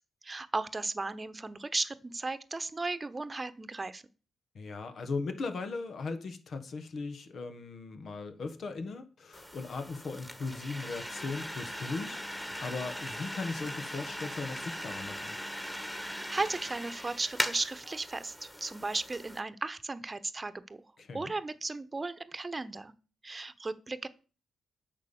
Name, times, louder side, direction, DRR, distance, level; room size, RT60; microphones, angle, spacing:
voice 1, 0.2-4.0 16.0-20.8 21.1-22.9 23.2-24.1, right 3 dB, 30° right, 1.1 m, -35 dB
voice 2, 4.5-15.4 21.0-21.3, left 3 dB, 60° left, 1.6 m, -38 dB
sound 1, 9.3-19.4, equal, 10° left, 2.1 m, -40 dB
9.0 x 6.0 x 7.1 m
hypercardioid pair, 45°, 0 cm